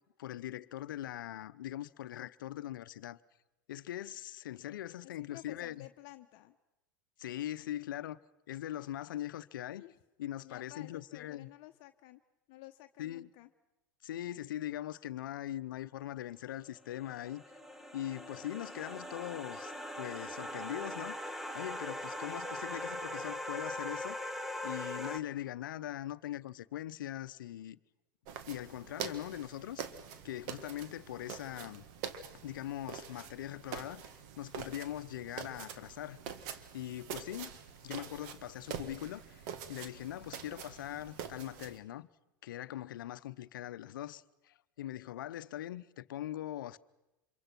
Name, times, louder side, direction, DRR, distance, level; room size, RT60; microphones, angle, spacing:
voice 1, 0.2-3.2 3.7-5.9 7.2-8.2 8.5-9.8 10.2-11.5 13.0-13.3 14.0-17.4 17.9-24.2 24.6-27.8 28.4-29.8 30.2-31.8 32.4-34.0 34.4-36.2 36.7-42.1 42.4-46.8, left 12 dB, 75° left, 0.8 m, -41 dB
voice 2, 5.0-6.6 9.7-9.9 10.4-12.2 12.5-13.5, left 17 dB, 50° left, 1.0 m, -52 dB
sound 1, 16.7-25.2, left 1 dB, ahead, 1.2 m, -41 dB
sound 2, 28.3-41.8, right 7 dB, 60° right, 1.8 m, -45 dB
27.0 x 23.0 x 6.0 m
hypercardioid pair, 105°, 11 cm